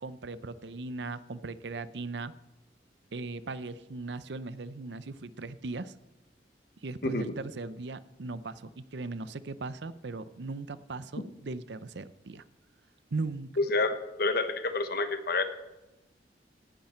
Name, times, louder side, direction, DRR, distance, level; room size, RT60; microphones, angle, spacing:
voice 1, 0.0-2.3 3.1-5.9 6.8-12.4 13.1-13.5, right 3 dB, 70° right, 15 dB, 0.6 m, -38 dB
voice 2, 7.0-7.3 11.2-11.3 13.6-15.4, left 3 dB, 55° left, 9 dB, 1.2 m, -29 dB
17.5 x 11.5 x 4.4 m, 1.0 s
head